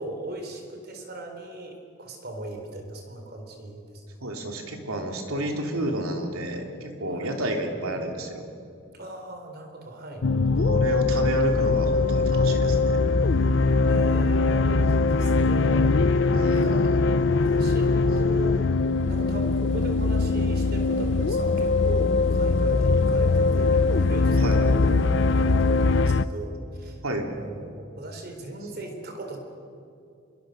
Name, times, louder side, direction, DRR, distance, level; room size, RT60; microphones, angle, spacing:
voice 1, 0.0-4.0 7.1-7.4 9.0-10.3 13.8-16.2 16.5-16.9 17.4-18.6 19.1-27.0 27.4-29.4, right 2 dB, 50° right, 4 dB, 3.9 m, -38 dB
voice 2, 4.2-8.5 10.6-12.9 16.3-17.0 24.4-24.7 27.0-27.3, right 1 dB, 90° right, 2 dB, 3.2 m, -31 dB
sound 1, 10.2-26.2, left 3 dB, 60° left, 0.6 m, -21 dB
26.5 x 22.5 x 6.5 m, 2.4 s
head